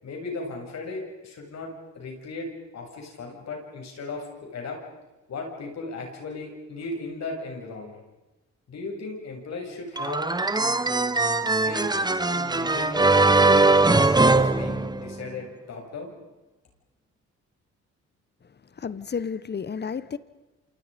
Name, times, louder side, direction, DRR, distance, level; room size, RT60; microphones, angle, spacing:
voice 1, 0.0-4.8 5.3-8.0 8.7-10.2 11.5-11.9 12.3-16.1, left 3 dB, 60° left, 1 dB, 7.9 m, -37 dB
sound 1, 10.0-15.3, right 3 dB, 15° right, 1.3 m, -21 dB
voice 2, 18.8-20.2, left 6 dB, 35° left, 16 dB, 1.3 m, -31 dB
28.0 x 27.5 x 5.4 m, 1.1 s
cardioid pair, 90°, 30 cm